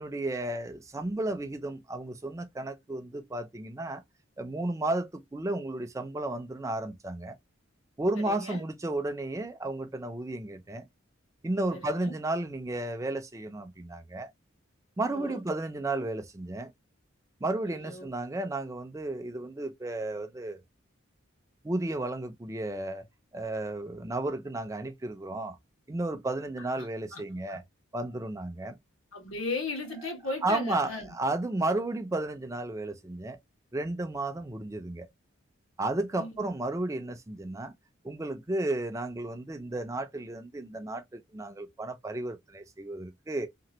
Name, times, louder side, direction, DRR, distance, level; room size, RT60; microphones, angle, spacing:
voice 1, 0.0-4.0 4.4-7.4 8.0-10.9 11.4-14.3 15.0-16.7 17.4-20.6 21.6-23.1 23.3-25.6 25.9-27.6 27.9-28.8 30.4-33.4 33.7-35.1 35.8-37.7 38.0-43.5, right 2 dB, 15° right, 0.4 m, -33 dB
voice 2, 8.1-8.6 11.7-12.1 15.1-15.4 17.6-18.1 26.8-26.9 27.1-27.2 27.5-27.6 29.1-31.1 36.2-36.5, left 2 dB, 80° left, 1.4 m, -36 dB
2.9 x 2.4 x 2.8 m
head